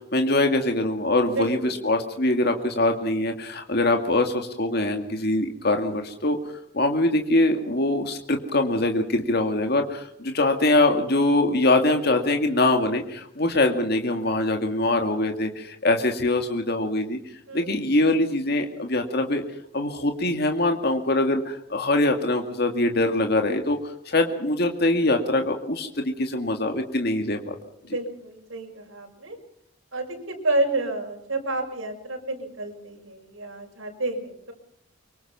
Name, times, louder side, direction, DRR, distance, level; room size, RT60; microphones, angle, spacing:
voice 1, 0.1-6.4 6.7-17.2 17.5-19.4 19.7-27.6, left 2 dB, 50° left, 4 dB, 2.1 m, -23 dB
voice 2, 1.4-1.8 17.5-17.8 27.8-29.4 29.9-34.5, right 2 dB, 80° right, 1 dB, 6.1 m, -30 dB
24.5 x 24.5 x 6.0 m, 0.71 s
head